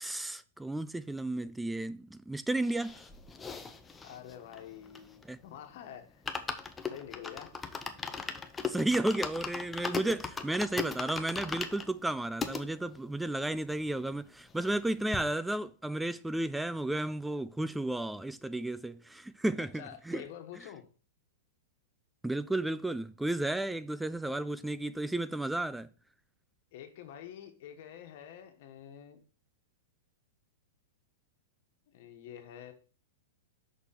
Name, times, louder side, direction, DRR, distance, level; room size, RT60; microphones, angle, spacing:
voice 1, 0.0-3.0 5.3-5.4 8.7-20.2 22.2-25.9, right 1 dB, 5° right, 0.3 m, -33 dB
sound 1, 2.6-5.4 5.7-5.8 6.1-12.6 13.2-13.3 13.5-13.6 13.9-14.8 15.1-15.2, left 5 dB, 15° left, 0.7 m, -38 dB
voice 2, 4.0-6.2 6.8-7.5 9.7-10.0 19.6-20.8 26.7-29.2 31.9-32.7, left 10 dB, 55° left, 1.5 m, -47 dB
6.2 x 4.1 x 5.8 m
hypercardioid pair, 135°, 0 cm